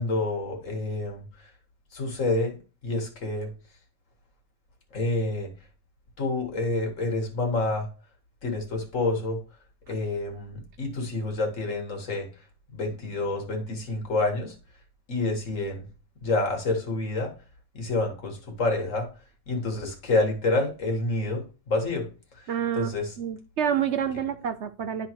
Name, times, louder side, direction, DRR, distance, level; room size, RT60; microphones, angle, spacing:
voice 1, 0.0-1.5 1.9-2.6 2.8-3.5 4.9-5.5 6.2-7.9 8.4-9.4 9.9-12.3 12.7-14.6 15.1-15.9 16.2-17.4 17.7-19.1 19.5-22.1 22.4-22.5 22.7-23.1, left 2 dB, 65° left, 1.9 m, -28 dB
voice 2, 22.5-25.1, right 8 dB, 65° right, 0.9 m, -28 dB
11.5 x 3.9 x 2.9 m
omnidirectional pair, 1.4 m